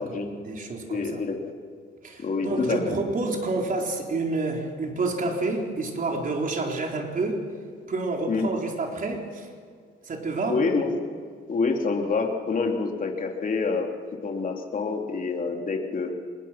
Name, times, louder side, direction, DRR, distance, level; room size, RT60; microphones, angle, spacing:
voice 1, 0.0-1.2 2.0-7.4 7.9-9.5 10.0-10.6, right 3 dB, 45° right, 1 dB, 4.2 m, -29 dB
voice 2, 0.9-1.4 2.2-2.9 8.3-8.5 10.5-10.9 11.5-13.9 14.2-16.1, left 4 dB, 45° left, 2 dB, 3.2 m, -27 dB
26.0 x 21.0 x 6.0 m, 2.1 s
cardioid pair, 90°, 20 cm